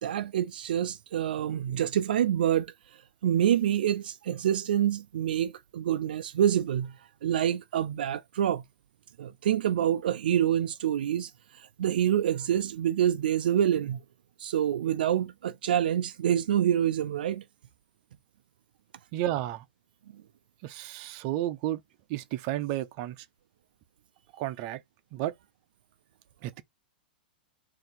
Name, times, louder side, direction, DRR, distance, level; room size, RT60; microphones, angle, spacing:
voice 1, 0.0-2.7 3.2-6.9 7.2-8.6 9.2-14.0 14.4-17.4, right 10 dB, 80° right, 0.4 m, -27 dB
voice 2, 19.1-19.6 20.6-21.8 22.1-23.2 24.4-24.8 25.1-25.3 26.4-26.6, right 14 dB, 45° right, 0.7 m, -32 dB
4.1 x 2.8 x 3.9 m
hypercardioid pair, 130°, 5 cm